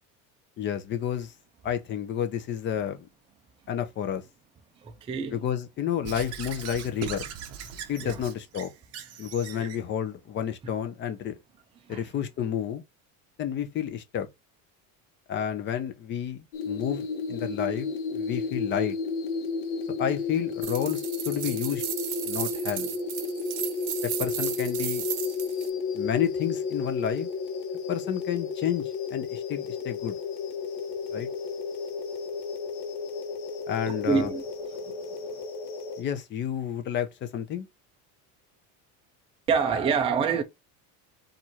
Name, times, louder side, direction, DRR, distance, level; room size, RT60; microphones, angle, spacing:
voice 1, 0.6-1.3 1.6-3.0 3.7-4.2 5.3-7.3 7.9-8.7 9.2-11.3 11.9-12.8 13.4-14.3 15.3-19.0 20.0-21.8 22.2-22.9 24.2-25.1 25.9-27.3 27.9-30.2 31.1-31.3 33.7-34.3 36.0-37.7, left 9 dB, 30° left, 0.7 m, -30 dB
voice 2, 4.8-5.5 8.0-8.2 9.6-9.7 10.6-10.7 11.9-12.0 33.9-34.4 34.8-34.9 39.5-40.4, right 6 dB, 15° right, 0.4 m, -27 dB
Squeak / Writing, 6.0-9.8, right 8 dB, 40° right, 1.0 m, -39 dB
sound 1, 16.5-36.0, left 5 dB, 90° left, 1.3 m, -32 dB
sound 2, 20.6-25.7, right 13 dB, 70° right, 0.9 m, -35 dB
4.6 x 2.6 x 4.2 m
cardioid pair, 165°, 38 cm